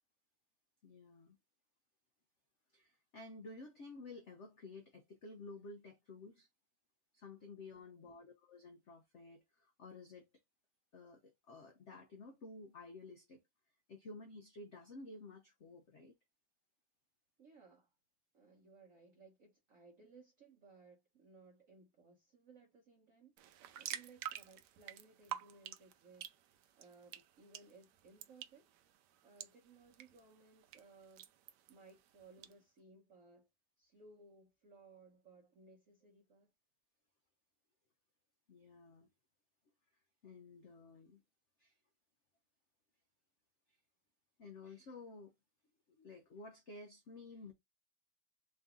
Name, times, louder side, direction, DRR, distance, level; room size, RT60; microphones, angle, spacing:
voice 1, 0.8-1.4 2.7-6.5 7.1-10.3 10.9-13.4 13.9-16.2 38.5-39.1 40.2-41.2 41.6-41.8 44.4-45.3 45.9-47.5, left 3 dB, 75° left, 0.6 m, -53 dB
voice 2, 7.7-8.2 17.4-17.9 18.3-26.3 26.8-28.7 29.2-31.3 31.7-33.5 33.8-36.5, right 3 dB, 55° right, 1.1 m, -62 dB
sound 1, 23.4-32.5, right 11 dB, 70° right, 1.1 m, -50 dB
3.9 x 2.6 x 3.5 m
omnidirectional pair, 2.1 m